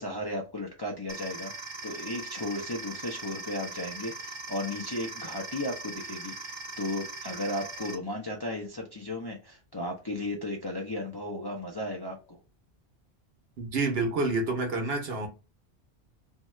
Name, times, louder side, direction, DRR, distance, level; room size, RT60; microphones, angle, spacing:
voice 1, 0.0-1.5 1.8-12.4, left 1 dB, 30° left, 0.4 m, -35 dB
sound 1, 1.1-7.9, right 3 dB, 40° right, 0.4 m, -40 dB
voice 2, 13.6-15.3, right 3 dB, 65° right, 1.0 m, -28 dB
2.7 x 2.3 x 3.0 m
omnidirectional pair, 1.1 m